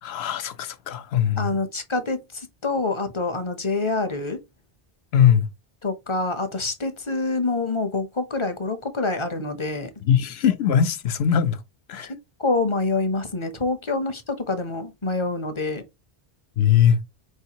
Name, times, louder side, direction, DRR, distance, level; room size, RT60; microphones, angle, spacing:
voice 1, 0.0-1.5 5.1-5.5 10.0-11.6 11.9-12.1 16.6-17.0, left 9 dB, 80° left, 0.8 m, -20 dB
voice 2, 1.4-4.4 5.8-9.9 12.1-15.8, left 3 dB, 35° left, 0.6 m, -26 dB
4.3 x 3.2 x 2.8 m
omnidirectional pair, 1.0 m